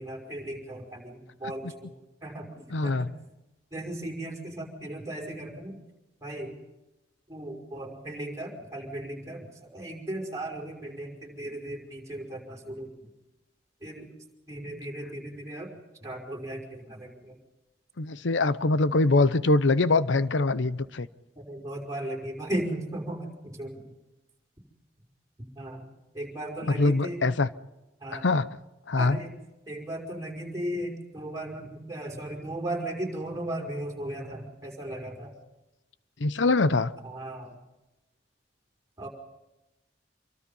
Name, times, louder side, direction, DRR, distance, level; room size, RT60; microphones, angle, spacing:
voice 1, 0.0-1.9 2.2-3.1 3.7-5.8 6.2-6.5 7.3-12.9 13.8-14.1 14.5-15.7 16.0-17.4 21.4-23.9 25.6-25.8 26.1-27.2 28.0-28.2 29.0-29.3 29.7-35.4 37.0-37.6 39.0-39.1, right 1 dB, 20° right, 5.4 m, -36 dB
voice 2, 2.7-3.1 18.0-21.1 26.6-27.5 28.1-28.5 28.9-29.2 36.2-36.9, left 3 dB, 85° left, 0.8 m, -23 dB
26.5 x 23.5 x 5.5 m
head